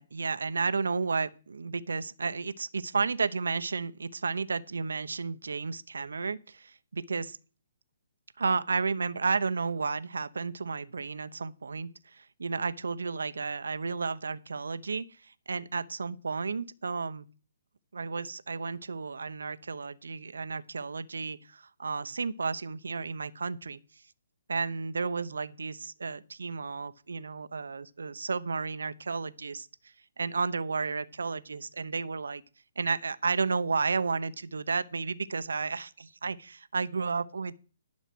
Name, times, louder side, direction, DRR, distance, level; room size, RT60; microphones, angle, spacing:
voice 1, 0.0-7.4 8.4-17.3 17.9-23.8 24.5-29.7 30.2-32.4 32.8-37.6, right 4 dB, 90° right, 0.8 m, -32 dB
11.5 x 6.4 x 6.1 m
hypercardioid pair, 155°, 0 cm